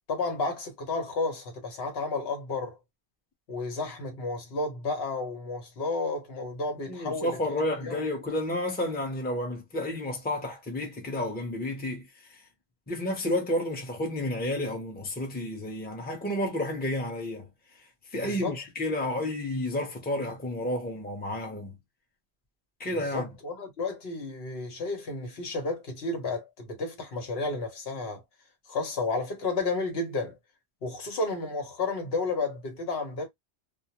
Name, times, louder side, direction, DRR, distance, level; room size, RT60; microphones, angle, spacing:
voice 1, 0.1-2.8 3.5-7.4 7.8-8.0 18.1-18.6 23.1-28.2 28.7-30.4 30.8-33.3, left 3 dB, 65° left, 1.1 m, -32 dB
voice 2, 6.9-12.0 12.9-17.5 18.1-21.8 22.8-23.3, left 1 dB, 10° left, 0.6 m, -31 dB
2.4 x 2.0 x 2.8 m
omnidirectional pair, 1.1 m